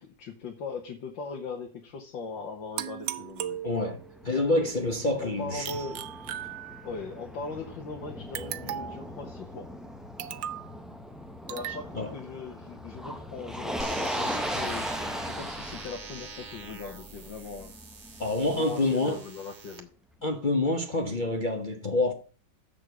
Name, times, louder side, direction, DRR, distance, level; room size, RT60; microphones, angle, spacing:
voice 1, 0.0-3.6 5.2-6.0 6.8-9.7 11.5-17.7 18.5-19.9, left 4 dB, 80° left, 2.0 m, -39 dB
sound 1, 2.8-4.2 5.6-7.1 8.3-9.1 10.2-10.7 11.5-11.8, right 11 dB, 90° right, 1.5 m, -37 dB
Motor vehicle (road), 3.4-18.5, equal, ahead, 0.4 m, -38 dB
voice 2, 3.6-5.7 11.9-12.1 18.2-19.2 20.2-22.1, left 2 dB, 35° left, 0.8 m, -27 dB
sound 2, 13.8-19.8, right 4 dB, 40° right, 1.6 m, -43 dB
7.4 x 6.9 x 8.0 m
omnidirectional pair, 2.0 m